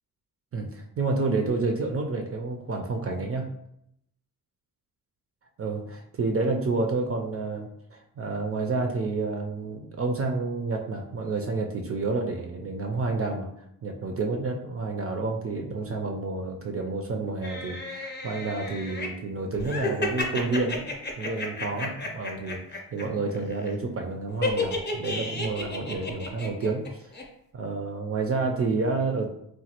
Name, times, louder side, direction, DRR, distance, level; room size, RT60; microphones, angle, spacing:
voice 1, 0.5-3.5 5.6-13.5 13.8-20.9 21.2-27.1 27.5-29.3, right 3 dB, 35° right, 2 dB, 0.4 m, -29 dB
sound 1, 17.4-19.1 19.6-23.0 23.3-23.7 24.4-26.9 27.1-27.2, left 3 dB, 25° left, 0.6 m, -32 dB
3.1 x 2.2 x 2.9 m, 0.76 s
cardioid pair, 75°, 39 cm